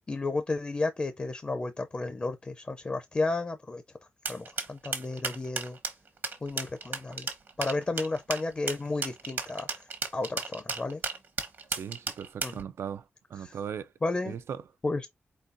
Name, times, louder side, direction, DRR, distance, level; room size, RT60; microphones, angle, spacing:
voice 1, 0.1-3.8 4.3-5.8 6.4-7.3 7.6-11.0 12.4-12.6 13.4-13.6 14.0-14.4 14.8-15.1, left 3 dB, 25° left, 0.5 m, -32 dB
sound 1, 4.3-12.6, right 4 dB, 55° right, 1.0 m, -34 dB
voice 2, 11.7-13.0 13.3-13.9 14.3-14.6, right 8 dB, 80° right, 0.4 m, -38 dB
4.4 x 4.0 x 2.5 m
wide cardioid pair, 160°, 4 cm